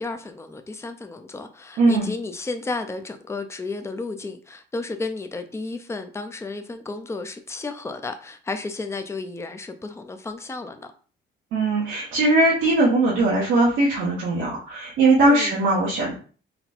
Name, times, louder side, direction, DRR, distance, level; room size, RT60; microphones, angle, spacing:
voice 1, 0.0-10.9 15.3-15.6, left 3 dB, 15° left, 0.5 m, -33 dB
voice 2, 1.8-2.1 11.5-16.1, right 2 dB, 90° right, 1.3 m, -20 dB
4.1 x 2.3 x 4.3 m
cardioid pair, 90°, 20 cm